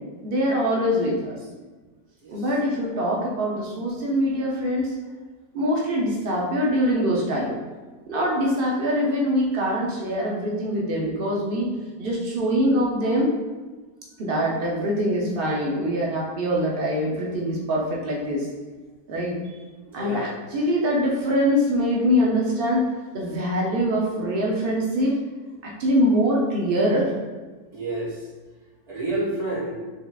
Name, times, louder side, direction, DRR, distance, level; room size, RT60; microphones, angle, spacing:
voice 1, 0.2-1.4 2.3-4.9 5.5-7.6 8.1-11.7 12.0-13.3 14.2-18.5 19.1-19.3 19.9-22.9 23.1-25.2 25.6-27.1, equal, 90° right, -3 dB, 0.4 m, -23 dB
voice 2, 19.9-20.3 27.7-28.3 28.9-29.8, right 2 dB, 25° right, -7 dB, 1.2 m, -29 dB
4.3 x 3.8 x 2.3 m, 1.3 s
omnidirectional pair, 1.8 m